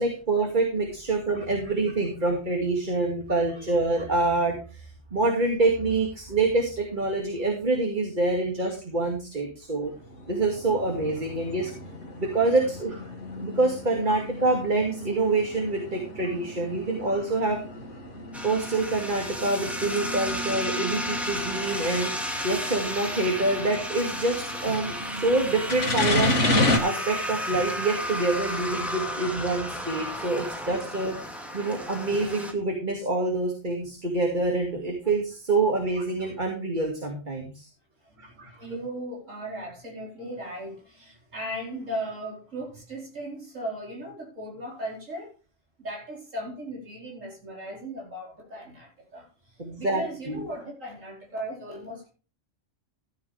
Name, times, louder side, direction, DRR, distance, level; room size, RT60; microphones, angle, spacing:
voice 1, 0.0-9.9 10.3-11.7 12.2-13.0 13.4-17.6 18.4-26.4 26.8-31.2 31.5-37.7 38.2-38.5 49.6-50.4, right 2 dB, 40° right, 2.5 m, -26 dB
sound 1, 9.9-26.8, left 1 dB, 70° left, 2.4 m, -32 dB
sound 2, 18.3-32.5, equal, ahead, 2.2 m, -33 dB
voice 2, 38.1-45.3 45.8-52.1, right 1 dB, 90° right, 5.3 m, -37 dB
15.5 x 9.3 x 3.4 m
omnidirectional pair, 1.3 m